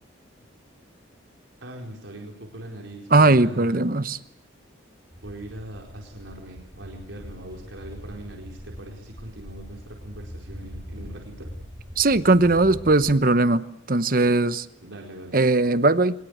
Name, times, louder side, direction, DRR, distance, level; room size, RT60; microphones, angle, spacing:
voice 1, 1.6-3.8 5.2-11.5 14.8-15.4, right 1 dB, 85° right, 4.5 m, -41 dB
voice 2, 3.1-4.2 12.0-14.6 15.3-16.1, right 2 dB, 45° right, 1.0 m, -19 dB
sound 1, 5.1-13.1, equal, 20° right, 4.9 m, -42 dB
24.0 x 21.5 x 8.2 m
head